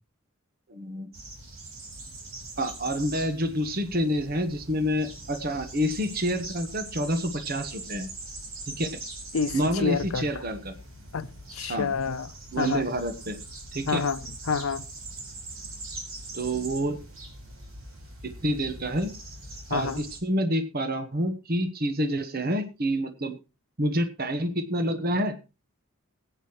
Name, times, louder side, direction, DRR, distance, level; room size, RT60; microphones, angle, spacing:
voice 1, 0.7-1.1 2.6-8.1 8.7-9.0 9.5-10.8 11.7-11.9 12.5-13.4 13.7-14.0 16.3-17.0 18.2-19.1 19.7-23.4 23.8-25.4, equal, 45° right, 1.2 m, -28 dB
sound 1, 1.1-20.2, right 2 dB, 75° right, 3.8 m, -42 dB
voice 2, 9.3-10.3 11.1-12.9 13.9-14.2 14.5-14.8 19.7-20.0, left 5 dB, 80° left, 0.6 m, -28 dB
20.0 x 9.0 x 3.1 m
head